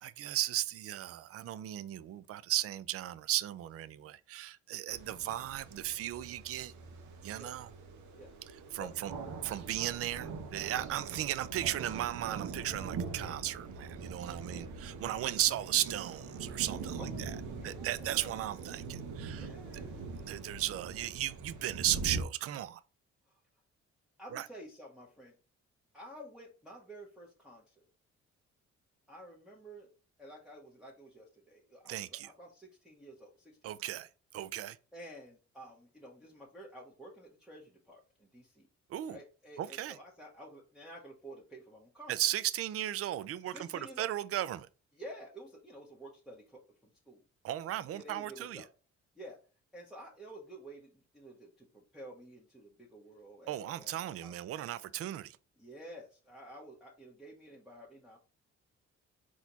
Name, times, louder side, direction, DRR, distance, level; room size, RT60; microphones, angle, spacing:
voice 1, 0.0-6.7 7.2-7.7 8.7-9.1 9.4-17.4 17.6-19.5 20.2-22.8 24.3-24.5 31.9-32.3 33.6-34.8 38.9-39.2 39.6-40.0 42.1-44.7 47.4-48.6 53.5-55.4, right 13 dB, 50° right, 0.4 m, -36 dB
sound 1, 4.9-22.2, right 4 dB, 70° right, 1.0 m, -43 dB
voice 2, 17.0-18.3 19.2-20.3 24.2-25.4 25.9-27.7 29.1-29.9 30.2-33.6 34.9-38.7 39.1-42.1 43.5-44.1 44.9-47.2 47.9-48.7 49.1-49.4 49.7-54.3 55.6-58.2, right 1 dB, ahead, 1.2 m, -51 dB
4.1 x 3.0 x 3.9 m
cardioid pair, 90°, 30 cm